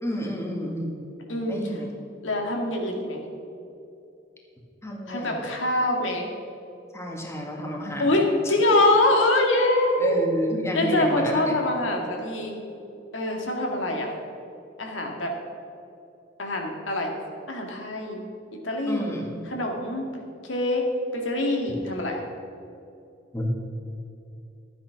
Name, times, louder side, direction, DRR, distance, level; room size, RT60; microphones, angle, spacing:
voice 1, 0.0-1.0 1.5-1.9 4.8-5.5 6.9-8.1 8.4-8.5 10.0-11.6 18.9-19.5 23.3-23.5, equal, 15° left, -1 dB, 1.9 m, -30 dB
voice 2, 2.2-3.2 5.1-6.3 8.0-10.2 10.7-12.5 13.1-14.1 14.8-15.3 16.4-17.1 17.5-18.2 18.6-19.1 19.5-20.0 20.4-20.8 21.1-22.2, left 2 dB, 90° left, 1 dB, 2.2 m, -24 dB
13.0 x 9.3 x 5.9 m, 2.7 s
head